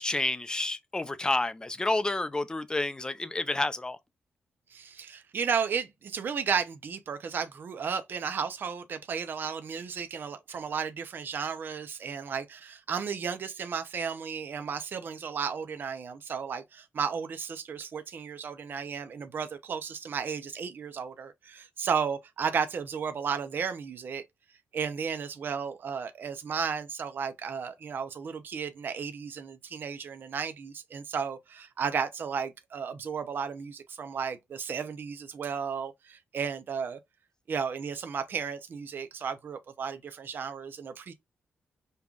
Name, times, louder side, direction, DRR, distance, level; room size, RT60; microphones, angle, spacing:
voice 1, 0.0-4.0, left 2 dB, 20° left, 0.5 m, -29 dB
voice 2, 4.7-24.2 24.7-37.0 37.5-41.1, right 6 dB, 55° right, 0.6 m, -34 dB
5.4 x 2.3 x 2.3 m
cardioid pair, 85°, 4 cm